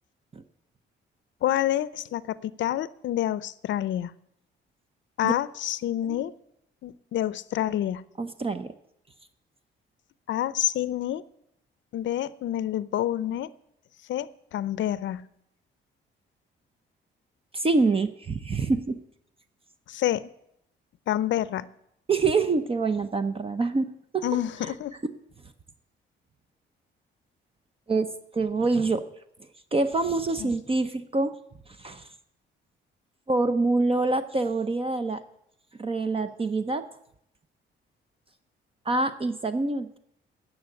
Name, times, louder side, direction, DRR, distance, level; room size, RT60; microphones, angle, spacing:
voice 1, 1.4-4.1 5.2-6.3 6.8-8.0 10.3-11.2 11.9-13.5 14.1-15.2 19.9-20.3 21.1-21.7 24.2-25.0 30.4-30.5, left 12 dB, 70° left, 18 dB, 0.6 m, -28 dB
voice 2, 8.2-8.7 17.5-19.0 22.1-24.3 24.6-24.7 27.9-29.1 29.7-31.4 31.8-32.1 33.3-35.2 35.8-36.8 38.9-40.0, right 3 dB, 30° right, 10 dB, 0.8 m, -26 dB
10.5 x 7.2 x 9.5 m, 0.78 s
cardioid pair, 90°, 20 cm